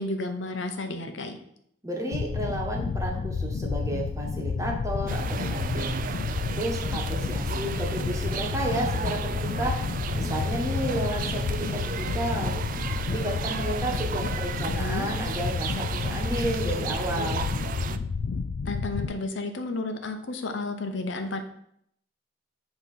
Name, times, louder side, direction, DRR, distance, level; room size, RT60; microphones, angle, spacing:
voice 1, 0.0-1.4 14.6-15.1 18.6-21.4, left 2 dB, 75° left, 6 dB, 0.8 m, -32 dB
voice 2, 1.8-5.9 6.5-9.8 10.1-12.6 13.1-17.5, right 1 dB, 15° right, -1 dB, 1.3 m, -32 dB
sound 1, 2.1-19.1, left 4 dB, 60° left, 0.3 m, -30 dB
sound 2, 5.1-18.0, right 6 dB, 45° right, 0.4 m, -34 dB
7.9 x 3.0 x 5.4 m, 0.71 s
head